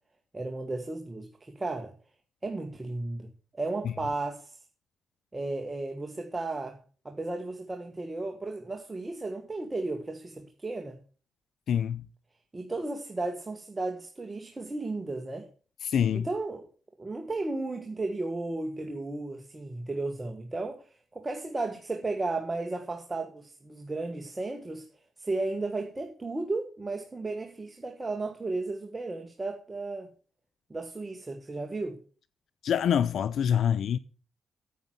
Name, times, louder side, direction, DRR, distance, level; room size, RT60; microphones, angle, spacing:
voice 1, 0.3-1.9 2.4-4.6 5.3-6.8 7.1-11.0 12.5-15.5 16.1-16.7 17.0-24.8 25.2-30.1 30.7-32.0, right 2 dB, 20° right, 1.6 m, -34 dB
voice 2, 11.7-12.0 15.8-16.3 32.6-34.0, left 8 dB, 75° left, 0.5 m, -25 dB
9.3 x 9.2 x 6.2 m
cardioid pair, 85°, 0 cm